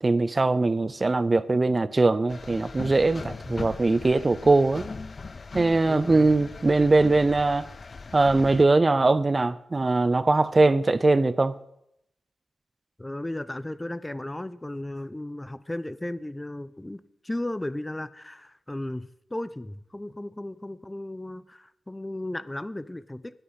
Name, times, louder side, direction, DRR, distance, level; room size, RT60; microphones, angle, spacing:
voice 1, 0.0-4.9 5.5-7.7 8.1-11.6, right 3 dB, 35° right, 0.6 m, -21 dB
sound 1, 2.3-8.6, left 4 dB, 50° left, 0.5 m, -39 dB
voice 2, 5.9-6.3 13.0-23.4, left 1 dB, 15° left, 0.8 m, -35 dB
9.6 x 9.6 x 8.1 m
supercardioid pair, 45°, 0 cm